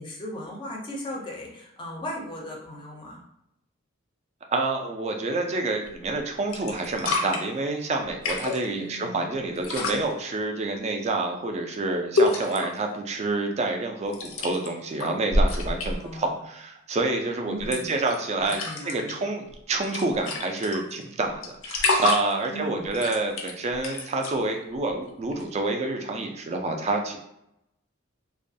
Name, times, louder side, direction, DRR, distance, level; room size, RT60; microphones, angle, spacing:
voice 1, 0.0-3.2 8.8-9.3 15.9-16.4 17.5-17.9 18.6-19.2 22.5-22.9, left 1 dB, 25° left, -2 dB, 0.5 m, -37 dB
voice 2, 4.5-18.6 18.8-27.2, right 2 dB, 35° right, 3 dB, 0.3 m, -28 dB
sound 1, 5.9-6.2 6.5-7.4 8.1-8.7 9.6-10.0 12.2-12.8 14.1-14.7 15.0-16.1 17.6-18.2 18.4-19.1 19.5-19.6 19.8-21.0 21.4-22.5 22.9-24.4 25.3-25.4, left 2 dB, 85° left, 0.5 m, -26 dB
2.3 x 2.2 x 2.6 m, 0.81 s
head